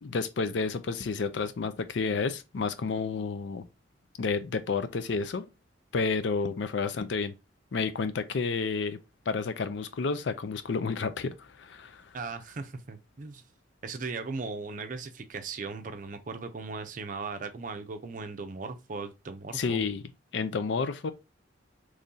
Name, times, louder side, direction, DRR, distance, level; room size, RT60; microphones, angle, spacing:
voice 1, 0.0-3.6 4.2-5.4 5.9-7.3 7.7-9.0 9.3-12.0 19.5-20.0 20.3-21.1, left 4 dB, 70° left, 0.5 m, -30 dB
voice 2, 12.1-13.4 13.8-19.9, right 4 dB, 45° right, 0.5 m, -38 dB
3.1 x 2.7 x 3.7 m
head